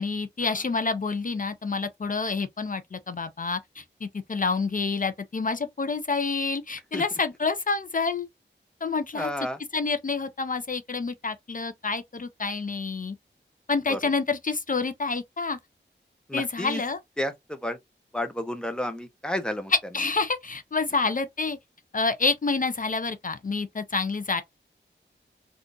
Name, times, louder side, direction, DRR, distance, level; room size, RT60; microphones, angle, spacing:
voice 1, 0.0-8.3 8.8-9.3 9.7-13.2 13.7-15.6 16.3-17.0 19.7-21.6 21.9-24.4, left 4 dB, 45° left, 0.5 m, -28 dB
voice 2, 9.1-9.6 13.9-14.0 16.3-16.8 17.2-17.8 18.1-19.7, left 1 dB, 5° left, 0.7 m, -31 dB
3.6 x 2.4 x 2.6 m
wide cardioid pair, 75°, 20 cm